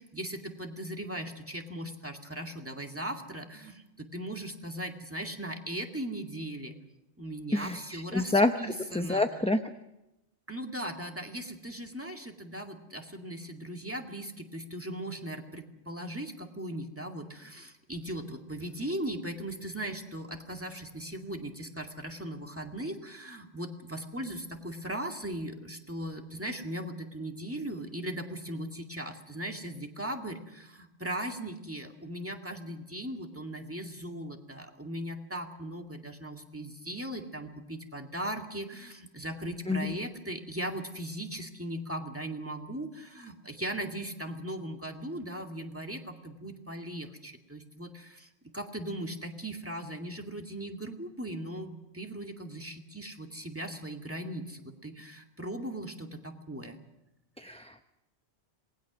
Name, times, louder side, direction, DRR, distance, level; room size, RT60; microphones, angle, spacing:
voice 1, 0.0-6.8 7.2-9.2 10.5-56.8, right 1 dB, 10° right, 3 dB, 2.2 m, -38 dB
voice 2, 7.5-8.5 8.9-9.6 39.7-39.9 57.4-57.8, left 2 dB, 5° left, 7 dB, 0.7 m, -27 dB
27.0 x 20.0 x 6.2 m, 0.89 s
omnidirectional pair, 1.1 m